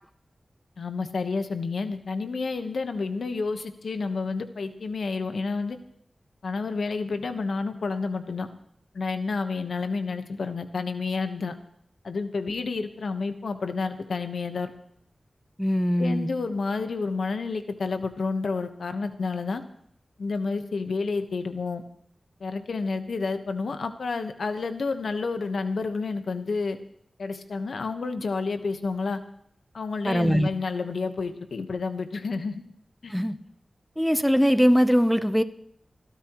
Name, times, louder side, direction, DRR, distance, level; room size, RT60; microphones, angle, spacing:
voice 1, 0.8-5.8 6.4-8.5 8.9-11.5 12.0-14.7 16.0-19.6 20.2-21.8 22.4-26.8 27.2-29.2 29.7-32.6 33.0-33.1, left 4 dB, 85° left, 8 dB, 1.2 m, -30 dB
voice 2, 15.6-16.3 30.0-30.5 33.1-33.4 34.0-35.4, equal, ahead, 11 dB, 0.8 m, -21 dB
29.0 x 12.5 x 3.1 m, 0.68 s
wide cardioid pair, 100°, 0 cm